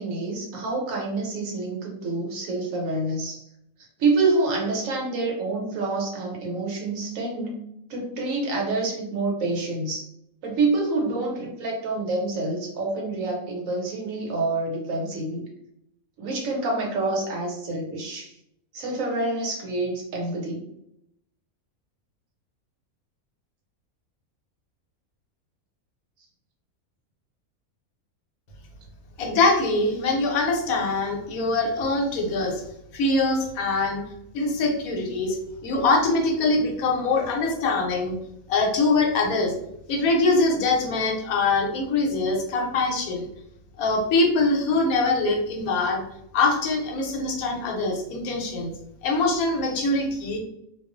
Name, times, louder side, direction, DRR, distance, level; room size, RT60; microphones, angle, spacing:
voice 1, 0.0-3.4 4.0-7.6 7.9-10.1 10.4-15.5 16.2-18.3 18.7-20.6, right 3 dB, 70° right, -1 dB, 1.0 m, -27 dB
voice 2, 29.2-32.6 32.9-34.0 34.3-35.4 35.6-38.2 38.5-39.5 39.9-43.3 43.8-46.0 46.3-48.7 49.0-50.4, left 3 dB, 80° left, 2 dB, 1.0 m, -23 dB
2.4 x 2.3 x 2.4 m, 0.78 s
omnidirectional pair, 1.5 m